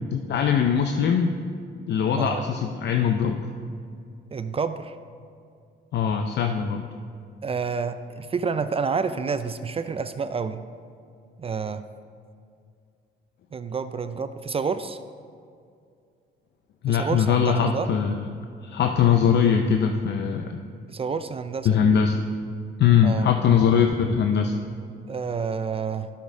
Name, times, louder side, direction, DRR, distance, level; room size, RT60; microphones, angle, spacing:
voice 1, 0.1-1.3 1.9-3.4 5.9-6.8 16.8-18.2 18.6-20.6 21.6-22.2 22.8-24.5, left 7 dB, 60° left, 5 dB, 0.5 m, -21 dB
voice 2, 4.3-5.0 7.4-10.6 11.4-11.8 13.5-15.0 16.9-17.9 20.9-21.8 23.0-23.3 25.1-26.1, right 5 dB, 30° right, 11 dB, 0.4 m, -29 dB
11.5 x 6.2 x 3.7 m, 2.3 s
cardioid pair, 90°, 20 cm